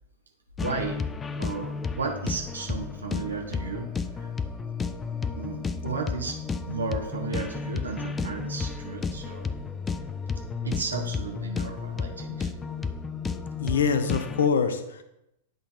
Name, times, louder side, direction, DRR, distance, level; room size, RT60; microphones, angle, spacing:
sound 1, 0.6-14.5, left 5 dB, 15° left, 0.4 m, -32 dB
voice 1, 0.6-1.0 1.4-4.3 5.4-9.5 10.6-12.5, right 4 dB, 75° right, 1 dB, 0.9 m, -34 dB
voice 2, 13.6-15.0, left 6 dB, 65° left, 10 dB, 0.7 m, -24 dB
9.8 x 4.0 x 4.0 m, 0.85 s
figure-of-eight pair, 100°, 0 cm